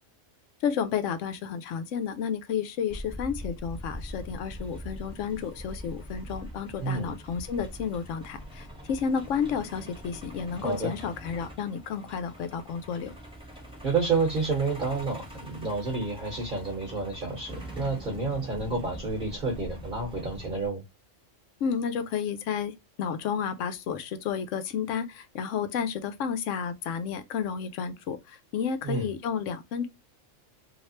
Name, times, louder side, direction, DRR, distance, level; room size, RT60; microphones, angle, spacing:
voice 1, 0.6-13.1 21.6-22.7 23.0-29.9, left 7 dB, 75° left, 0.9 m, -31 dB
Truck, 2.9-20.7, equal, 5° right, 1.0 m, -43 dB
voice 2, 6.8-7.1 10.6-10.9 13.8-20.8 28.8-29.1, right 4 dB, 45° right, 1.1 m, -29 dB
3.1 x 2.7 x 2.8 m
omnidirectional pair, 1.3 m